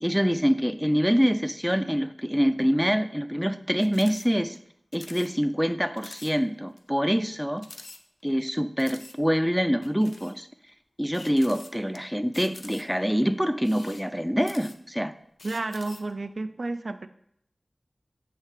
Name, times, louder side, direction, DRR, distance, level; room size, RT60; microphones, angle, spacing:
voice 1, 0.0-4.6 4.9-7.7 8.2-10.5 11.0-15.1, equal, 5° right, 11 dB, 0.3 m, -25 dB
sound 1, 3.8-4.3 4.5-4.6 4.9-5.3 5.6-5.7 6.0-6.3 6.8-6.9 7.6-8.4 8.8-9.2 9.8-10.4 11.1-12.0 12.3-13.0 13.6-15.0 15.4-16.1, left 2 dB, 75° left, 0.4 m, -46 dB
voice 2, 15.4-17.1, right 2 dB, 80° right, 9 dB, 0.3 m, -31 dB
6.6 x 3.2 x 4.8 m, 0.71 s
wide cardioid pair, 60°, 0 cm